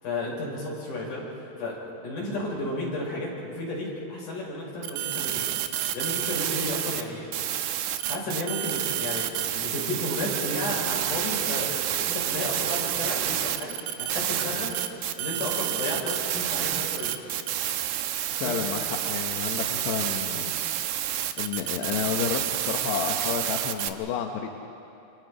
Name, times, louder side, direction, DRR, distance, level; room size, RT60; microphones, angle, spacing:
voice 1, 0.0-1.3 1.6-5.4 5.9-7.3 7.7-7.8 8.1-14.7 15.2-17.2 18.4-18.6, left 1 dB, 50° left, -4 dB, 7.1 m, -33 dB
sound 1, 4.8-7.0 7.3-23.9, right 11 dB, 85° right, 1.7 m, -29 dB
voice 2, 18.4-20.5 20.8-24.5, left 8 dB, 90° left, 2 dB, 3.2 m, -31 dB
27.5 x 27.0 x 5.0 m, 2.8 s
omnidirectional pair, 4.7 m